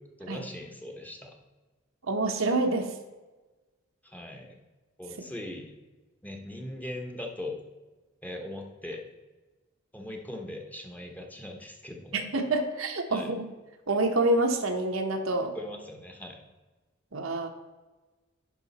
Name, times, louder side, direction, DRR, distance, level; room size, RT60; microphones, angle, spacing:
voice 1, 0.2-1.3 4.0-4.6 5.0-5.7 6.2-7.6 8.2-9.0 9.9-12.2 13.1-13.3 15.3-16.4, left 1 dB, 10° left, 2 dB, 0.9 m, -40 dB
voice 2, 2.1-2.9 12.1-13.4 13.9-15.5 17.1-17.5, right 2 dB, 75° right, 4 dB, 1.1 m, -27 dB
11.0 x 5.1 x 4.1 m, 1.2 s
head